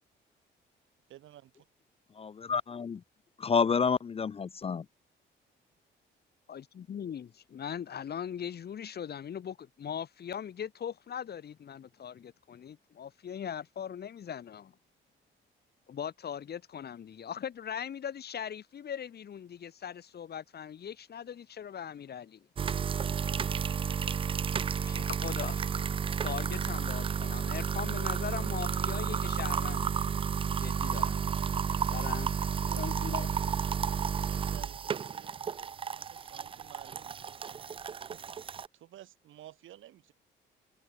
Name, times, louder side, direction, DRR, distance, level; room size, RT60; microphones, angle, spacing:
voice 1, 1.1-1.7 32.3-32.4 32.7-33.3 34.0-38.2 38.7-40.1, right 13 dB, 80° right, 7.1 m, -54 dB
voice 2, 2.2-3.0 3.4-4.8, left 5 dB, 30° left, 0.5 m, -29 dB
voice 3, 6.5-14.7 15.9-22.5 24.9-25.7 26.2-30.0 30.6-31.5 31.9-32.4 32.8-33.3, left 8 dB, 55° left, 2.1 m, -40 dB
sound 1, 22.6-38.7, right 7 dB, 30° right, 0.3 m, -32 dB
cardioid pair, 90°, 20 cm